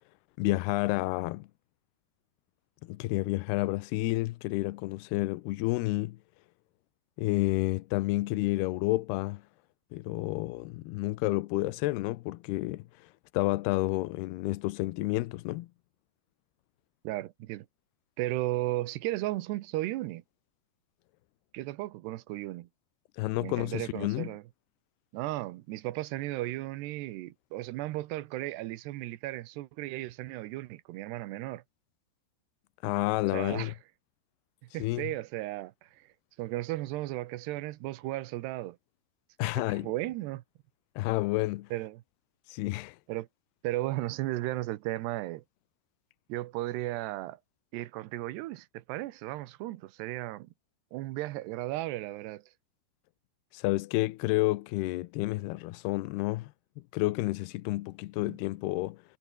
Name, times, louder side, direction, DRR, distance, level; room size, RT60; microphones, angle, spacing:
voice 1, 0.4-1.5 2.9-6.2 7.2-9.4 9.9-12.8 13.3-15.7 23.2-24.3 32.8-33.7 34.8-35.1 39.4-39.9 41.0-41.7 42.5-43.0 53.5-56.5 56.9-59.0, left 19 dB, 85° left, 2.7 m, -30 dB
voice 2, 17.0-17.7 18.2-20.2 21.5-22.7 23.4-24.4 25.1-31.6 33.3-33.7 34.7-36.1 36.4-38.8 39.4-40.4 41.7-42.0 43.1-43.3 43.6-45.4 46.3-47.4 47.7-50.5 50.9-52.4 58.2-58.4, right 17 dB, 85° right, 3.1 m, -35 dB
omnidirectional pair, 4.8 m